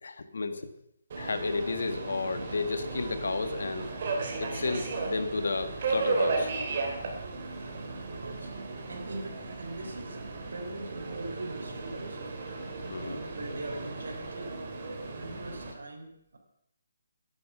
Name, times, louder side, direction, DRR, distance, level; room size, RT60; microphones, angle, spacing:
voice 1, 0.0-0.7 1.2-3.9 4.4-6.5 12.9-13.2, left 3 dB, 75° left, 9 dB, 1.7 m, -32 dB
Subway metro underground, 1.1-15.7, right 3 dB, 40° right, 3.4 m, -35 dB
voice 2, 8.9-12.3 13.0-14.5 15.1-16.4, right 2 dB, 90° right, 1 dB, 4.0 m, -41 dB
13.5 x 11.0 x 5.8 m, 0.78 s
hypercardioid pair, 165°, 0 cm